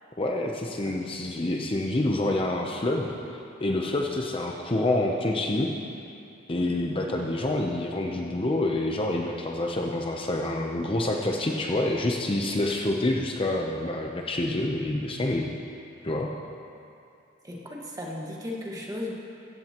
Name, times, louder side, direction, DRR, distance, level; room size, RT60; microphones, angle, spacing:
voice 1, 0.2-3.1 3.6-5.7 6.5-15.5 16.0-16.3, left 1 dB, 25° left, 0 dB, 0.7 m, -27 dB
voice 2, 17.4-19.1, left 1 dB, 20° right, -2 dB, 1.6 m, -36 dB
16.0 x 15.0 x 3.0 m, 2.6 s
head